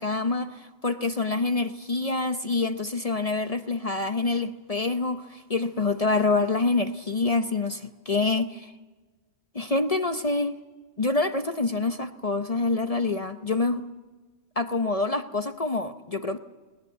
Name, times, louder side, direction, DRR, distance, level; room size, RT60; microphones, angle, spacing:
voice 1, 0.0-8.7 9.5-10.6 11.0-13.8 14.6-16.4, left 3 dB, 35° left, 9 dB, 0.7 m, -26 dB
20.5 x 19.0 x 9.4 m, 1.3 s
omnidirectional pair, 1.5 m